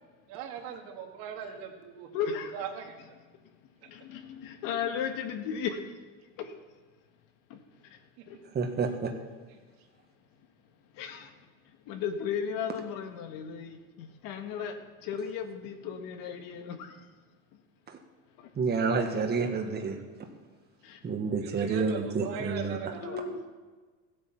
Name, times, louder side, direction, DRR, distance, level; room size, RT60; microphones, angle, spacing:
voice 1, 0.3-2.1 2.5-3.1 21.4-23.2, right 8 dB, 75° right, 4 dB, 2.2 m, -39 dB
voice 2, 2.1-2.5 3.9-5.8 6.4-6.5 7.5-7.6 11.0-11.3 11.9-14.7 15.0-16.9 20.8-21.0 21.7-21.8 23.0-23.4, left 7 dB, 70° left, 6 dB, 1.6 m, -35 dB
voice 3, 8.5-9.1 18.6-20.0 21.0-22.8, right 4 dB, 30° right, 3 dB, 1.6 m, -29 dB
15.5 x 8.5 x 5.9 m, 1.4 s
supercardioid pair, 110°, 34 cm